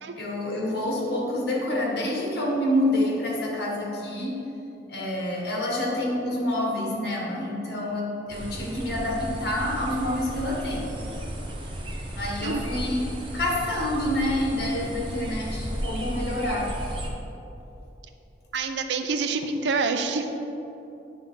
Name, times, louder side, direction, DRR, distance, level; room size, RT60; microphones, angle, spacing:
voice 1, 0.2-4.4 4.9-10.9 12.1-13.0 13.3-16.7, left 1 dB, 60° left, -2 dB, 1.5 m, -27 dB
sound 1, 8.3-17.1, equal, 30° right, 0.8 m, -34 dB
voice 2, 18.5-20.5, right 4 dB, 80° right, 7 dB, 0.5 m, -27 dB
9.0 x 3.8 x 5.6 m, 2.9 s
head